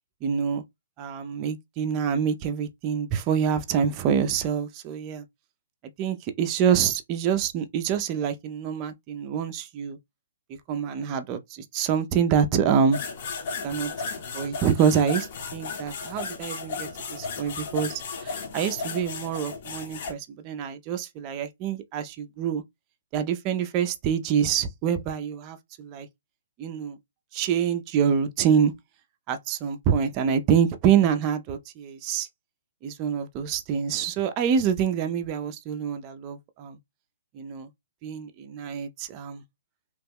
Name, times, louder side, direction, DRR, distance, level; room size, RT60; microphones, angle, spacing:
voice 1, 0.2-0.6 1.0-5.2 6.0-10.0 10.7-13.0 13.6-13.9 14.3-22.6 23.1-26.1 26.6-27.0 27.3-28.7 29.3-32.3 32.8-36.8 37.3-37.7 38.0-39.4, right 7 dB, 25° right, 0.4 m, -26 dB
sound 1, 12.9-20.1, left 4 dB, 45° left, 0.8 m, -34 dB
2.9 x 2.1 x 3.4 m
hypercardioid pair, 160°, 0 cm